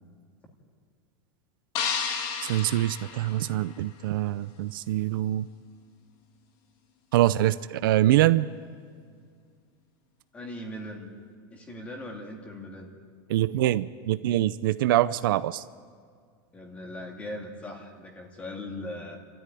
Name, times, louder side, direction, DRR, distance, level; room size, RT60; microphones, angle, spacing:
sound 1, 1.8-4.0, left 6 dB, 40° left, 1.7 m, -32 dB
voice 1, 2.4-5.5 7.1-8.5 13.3-15.6, right 14 dB, 70° right, 14 dB, 0.6 m, -24 dB
voice 2, 10.3-11.1 11.5-12.9 16.5-19.2, left 1 dB, 10° left, 2 dB, 2.2 m, -39 dB
29.5 x 13.5 x 9.3 m, 2.1 s
supercardioid pair, 180°, 12 cm